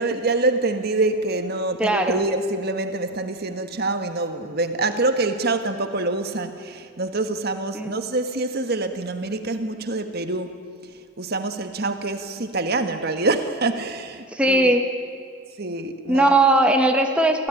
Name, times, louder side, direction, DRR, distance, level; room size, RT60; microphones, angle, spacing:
voice 1, 0.0-10.6 11.2-14.7 15.6-16.3, right 2 dB, 50° right, 8 dB, 1.5 m, -25 dB
voice 2, 1.8-2.2 7.7-7.9 14.3-14.8 16.1-17.5, right 1 dB, 5° right, 3 dB, 1.4 m, -19 dB
27.0 x 16.5 x 10.0 m, 2.1 s
head